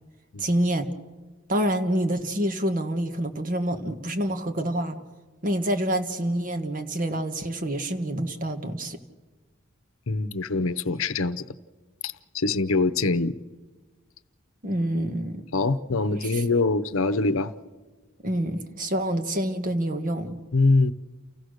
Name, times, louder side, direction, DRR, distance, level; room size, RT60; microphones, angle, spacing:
voice 1, 0.4-0.9 1.5-5.0 5.4-9.0 14.6-15.4 16.2-16.4 18.2-20.4, right 1 dB, 40° right, 1.4 m, -27 dB
voice 2, 10.1-11.4 12.0-13.4 15.5-17.5 20.5-20.9, left 3 dB, 80° left, 0.8 m, -24 dB
29.0 x 16.5 x 6.5 m
head